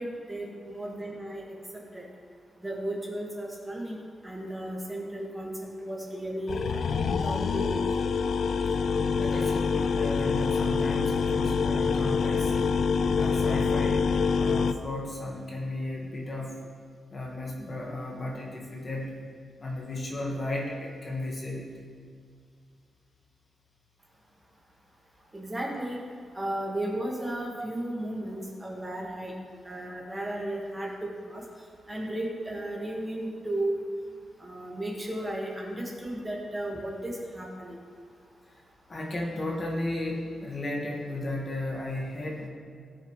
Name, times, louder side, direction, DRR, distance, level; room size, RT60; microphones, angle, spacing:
voice 1, 0.0-1.4 1.9-2.0 2.6-5.5 5.8-6.8 7.2-8.0 25.3-26.0 26.3-29.3 29.7-31.4 31.9-33.8 34.4-37.8, right 1 dB, 15° right, -3 dB, 1.7 m, -34 dB
sound 1, 6.5-14.7, left 5 dB, 60° left, 0.4 m, -26 dB
voice 2, 9.2-12.7 13.2-16.6 17.1-19.2 19.6-21.7 38.9-42.5, left 1 dB, 30° left, -2 dB, 1.6 m, -34 dB
19.0 x 6.9 x 3.2 m, 2.2 s
wide cardioid pair, 145°, 0 cm